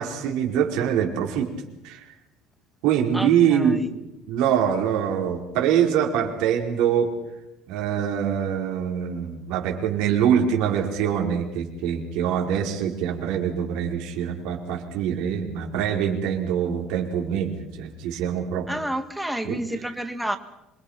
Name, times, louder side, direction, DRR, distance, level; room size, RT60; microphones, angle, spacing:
voice 1, 0.0-1.5 1.8-2.0 2.8-3.8 4.3-7.1 7.7-18.7 19.4-19.6, right 8 dB, 75° right, 2 dB, 5.0 m, -24 dB
voice 2, 3.1-3.9 18.7-20.4, right 1 dB, 5° right, 8 dB, 1.6 m, -30 dB
26.5 x 23.5 x 5.9 m, 0.92 s
cardioid pair, 160°, 0 cm